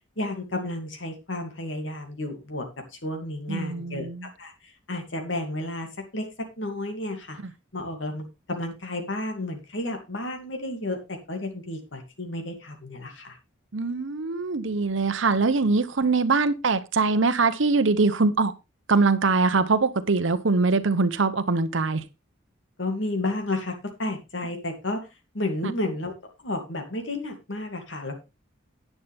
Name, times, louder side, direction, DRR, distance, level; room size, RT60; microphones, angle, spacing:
voice 1, 0.2-2.7 2.9-4.1 4.4-5.9 6.1-6.3 6.6-7.4 7.7-13.4 22.8-25.0 25.3-26.1 26.4-28.2, left 2 dB, 70° left, 4 dB, 2.5 m, -32 dB
voice 2, 3.5-4.3 13.7-18.5 18.9-22.0, right 3 dB, 75° right, 12 dB, 0.8 m, -23 dB
11.0 x 9.3 x 3.5 m, 0.26 s
head